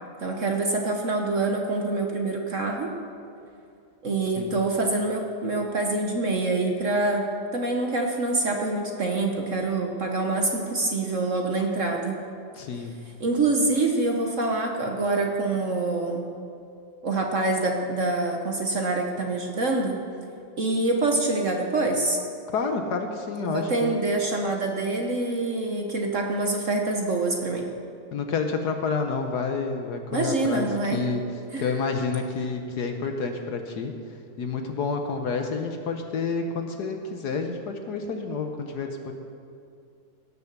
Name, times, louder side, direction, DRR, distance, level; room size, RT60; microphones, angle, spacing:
voice 1, 0.2-2.9 4.0-7.2 7.5-12.2 13.2-16.3 17.0-20.0 20.6-22.2 23.4-27.6 30.1-31.0 31.5-31.7, right 2 dB, 45° right, 2 dB, 1.2 m, -25 dB
voice 2, 12.5-13.0 22.5-23.9 28.1-31.2 31.6-33.9 34.4-39.1, left 4 dB, 60° left, 5 dB, 1.3 m, -29 dB
17.5 x 7.0 x 6.7 m, 2.5 s
omnidirectional pair, 2.2 m